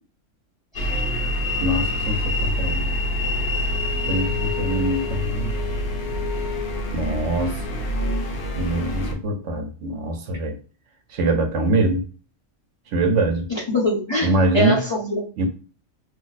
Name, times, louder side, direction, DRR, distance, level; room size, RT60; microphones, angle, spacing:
sound 1, 0.7-9.1, left 1 dB, 55° left, 0.8 m, -26 dB
voice 1, 1.6-2.9 4.1-5.6 6.9-7.6 8.6-10.6 11.1-12.0 12.9-13.5 14.2-14.8 15.4-15.5, right 1 dB, 70° right, 1.0 m, -23 dB
voice 2, 13.5-15.2, left 1 dB, 25° left, 0.8 m, -24 dB
2.6 x 2.0 x 3.9 m
omnidirectional pair, 1.3 m